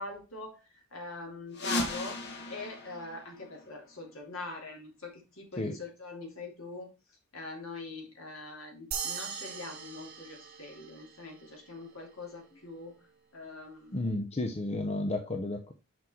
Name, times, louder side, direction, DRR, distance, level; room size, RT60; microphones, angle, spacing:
voice 1, 0.0-2.2 2.5-6.9 7.3-13.0 13.3-14.2, left 2 dB, 70° left, 3.1 m, -43 dB
sound 1, 1.5-4.1, left 1 dB, 55° left, 1.5 m, -37 dB
sound 2, 8.9-11.7, right 7 dB, 50° right, 1.8 m, -40 dB
voice 2, 13.9-15.7, left 2 dB, 30° left, 0.7 m, -32 dB
6.1 x 5.5 x 4.4 m
head